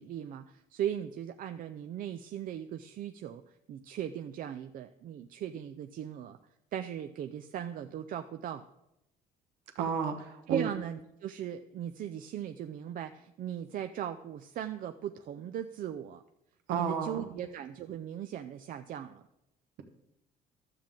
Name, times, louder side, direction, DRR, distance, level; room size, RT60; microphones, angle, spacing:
voice 1, 0.0-3.4 3.7-6.4 6.7-8.6 10.5-16.2 16.7-19.2, right 10 dB, 55° right, 7 dB, 0.4 m, -38 dB
voice 2, 9.7-10.7 16.7-17.4, right 6 dB, 85° right, 5 dB, 1.2 m, -32 dB
12.5 x 7.3 x 3.7 m, 0.87 s
cardioid pair, 110°, 17 cm